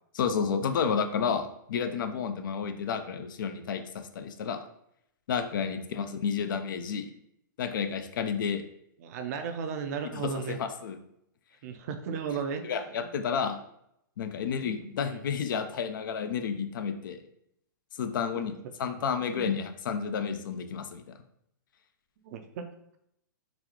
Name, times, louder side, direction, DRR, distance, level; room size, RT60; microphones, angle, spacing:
voice 1, 0.1-4.6 5.3-7.1 7.6-8.6 10.1-11.0 12.6-13.6 14.2-17.2 18.0-18.5 18.8-21.1, left 6 dB, 70° left, 8 dB, 0.4 m, -31 dB
voice 2, 9.0-10.6 11.6-13.1 14.6-15.3 18.3-18.5 19.3-19.6 22.2-22.7, right 6 dB, 50° right, 6 dB, 0.4 m, -36 dB
3.9 x 2.4 x 2.9 m, 0.76 s
hypercardioid pair, 140°, 11 cm